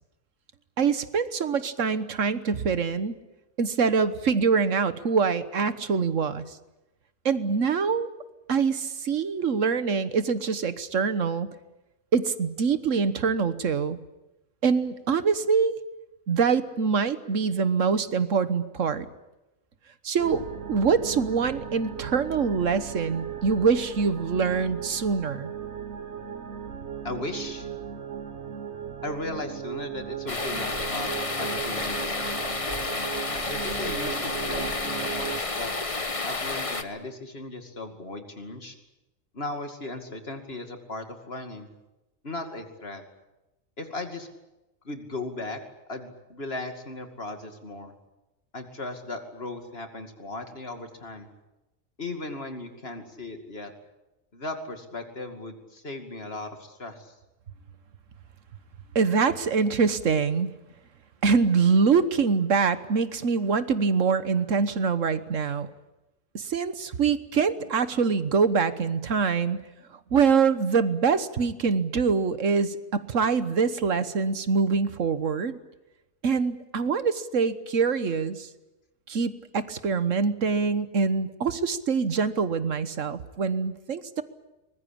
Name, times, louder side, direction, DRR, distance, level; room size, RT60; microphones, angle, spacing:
voice 1, 0.8-3.2 3.6-6.6 7.2-8.1 8.5-11.5 12.1-14.0 14.6-15.8 16.3-19.1 20.0-20.4 20.7-25.5 58.9-60.5 61.2-65.7 66.3-69.6 70.1-75.6 76.2-78.5 79.1-84.2, right 5 dB, 75° right, 12 dB, 1.6 m, -24 dB
sound 1, 20.2-35.4, right 8 dB, 60° right, 1.6 m, -37 dB
voice 2, 27.0-27.7 29.0-32.4 33.3-35.7 36.2-38.8 39.3-41.7 42.2-43.0 43.8-44.3 44.8-45.6 45.9-47.9 48.5-51.3 52.0-53.7 54.3-57.1, left 2 dB, 50° left, 6 dB, 2.7 m, -37 dB
sound 2, 30.3-36.8, left 3 dB, 25° left, 1.3 m, -30 dB
23.5 x 21.0 x 8.7 m, 0.98 s
omnidirectional pair, 1.3 m